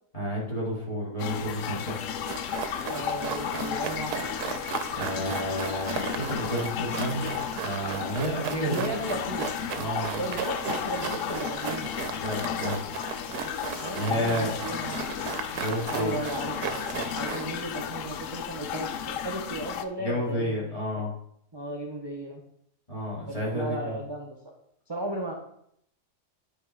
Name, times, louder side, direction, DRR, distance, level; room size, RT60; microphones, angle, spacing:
voice 1, 0.1-2.1 4.9-8.9 9.7-10.1 12.2-12.8 14.0-14.8 15.5-16.2 20.0-21.1 22.9-24.0, equal, 20° left, -6 dB, 3.0 m, -31 dB
sound 1, 1.2-19.8, left 8 dB, 65° left, 0.8 m, -34 dB
sound 2, 2.3-17.4, right 7 dB, 75° right, 1.2 m, -36 dB
voice 2, 2.9-4.1 8.6-9.5 10.1-11.9 13.8-15.1 15.9-16.8 17.1-20.8 21.5-22.4 23.3-24.3 24.9-25.3, right 1 dB, 20° right, 0 dB, 0.7 m, -35 dB
9.9 x 4.5 x 4.6 m, 0.72 s
omnidirectional pair, 1.7 m